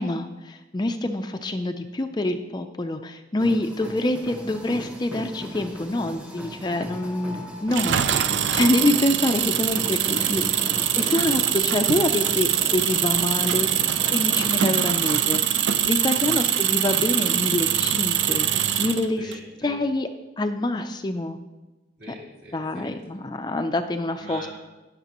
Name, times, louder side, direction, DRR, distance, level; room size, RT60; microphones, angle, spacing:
voice 1, 0.0-8.0 8.5-10.4 11.0-13.7 14.1-15.4 15.8-18.5 18.8-19.3 19.6-20.1 20.4-21.4 22.5-24.5, left 1 dB, 25° left, 7 dB, 0.4 m, -26 dB
sound 1, 3.4-14.5, equal, 5° right, 0.8 m, -37 dB
Engine, 7.7-19.3, right 10 dB, 75° right, 0.5 m, -23 dB
voice 2, 10.0-10.8 12.6-13.9 16.2-16.5 19.2-19.8 22.0-23.2 24.2-24.5, right 1 dB, 55° right, -5 dB, 3.1 m, -43 dB
18.5 x 6.7 x 3.0 m, 1.1 s
head